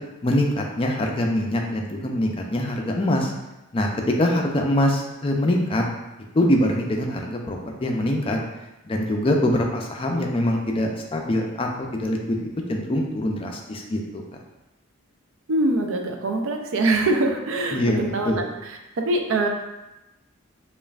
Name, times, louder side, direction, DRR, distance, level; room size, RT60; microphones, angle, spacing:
voice 1, 0.2-3.3 3.7-5.8 6.3-8.4 8.9-12.4 12.7-14.2 17.7-18.4, left 1 dB, 25° left, 1 dB, 0.4 m, -23 dB
voice 2, 15.5-19.5, right 2 dB, 65° right, 3 dB, 0.5 m, -24 dB
5.1 x 2.5 x 2.4 m, 0.99 s
head